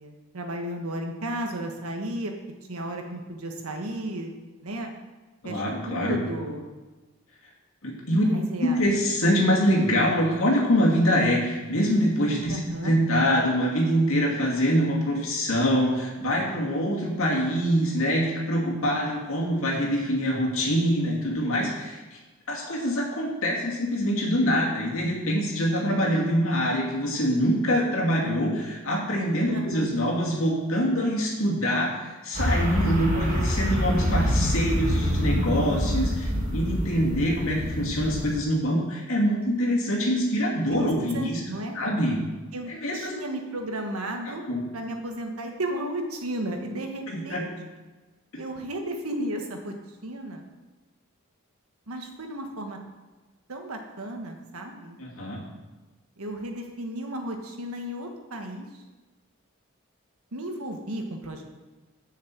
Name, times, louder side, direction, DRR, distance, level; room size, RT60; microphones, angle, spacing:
voice 1, 0.0-2.3 2.7-4.3 4.6-4.9 5.4-6.7 8.1-8.8 12.5-13.0 29.5-29.9 40.7-41.8 42.5-44.5 44.7-47.5 48.4-49.8 50.0-50.5 51.9-52.8 53.5-55.0 56.2-58.7 60.3-61.5, right 1 dB, 90° right, 3 dB, 1.4 m, -34 dB
voice 2, 5.4-6.2 7.8-8.2 8.6-22.0 22.5-31.9 32.2-41.4 41.7-42.2 42.7-43.1 44.2-44.6 47.1-47.4 55.0-55.4, equal, 70° left, -3 dB, 2.4 m, -24 dB
sound 1, 32.3-38.4, equal, 35° right, 1.6 m, -26 dB
7.0 x 6.5 x 7.6 m, 1.2 s
head